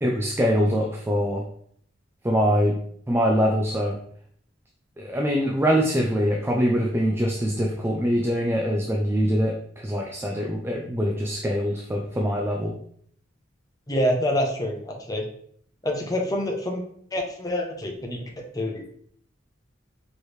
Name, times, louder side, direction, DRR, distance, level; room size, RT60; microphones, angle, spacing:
voice 1, 0.0-1.4 2.2-2.8 3.1-4.0 5.0-12.8, equal, 10° right, 0 dB, 0.4 m, -23 dB
voice 2, 13.9-15.3 15.8-16.8 17.1-18.3 18.5-18.8, left 1 dB, 20° left, 0 dB, 0.7 m, -26 dB
4.5 x 3.1 x 3.2 m, 0.64 s
head